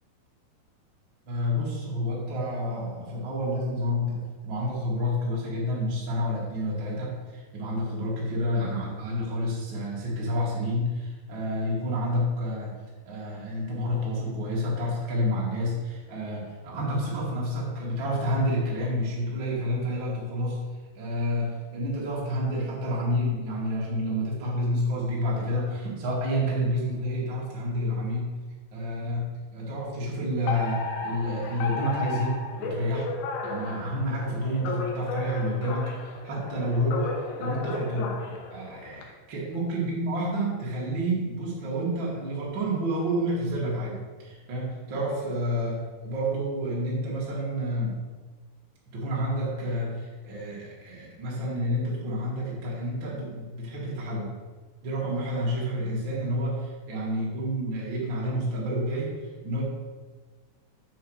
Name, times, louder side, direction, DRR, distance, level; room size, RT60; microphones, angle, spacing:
voice 1, 1.2-12.7 13.0-20.6 20.9-28.3 28.7-38.2 38.5-48.0 48.9-54.4 54.8-59.1 59.4-59.6, equal, 55° right, -6 dB, 1.3 m, -29 dB
Alarm, 30.5-39.0, left 4 dB, 90° left, 3.2 m, -34 dB
7.2 x 4.7 x 6.4 m, 1.3 s
omnidirectional pair, 5.4 m